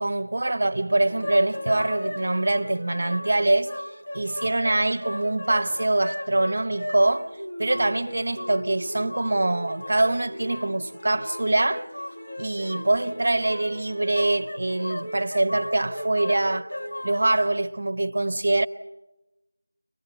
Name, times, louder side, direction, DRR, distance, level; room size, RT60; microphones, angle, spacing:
voice 1, 0.0-3.8 4.1-7.3 7.6-11.9 12.4-16.7 17.0-18.7, right 2 dB, 40° right, 0.8 m, -24 dB
sound 1, 1.0-17.5, left 1 dB, 40° left, 1.6 m, -36 dB
23.0 x 20.5 x 8.0 m
figure-of-eight pair, 180°, 0 cm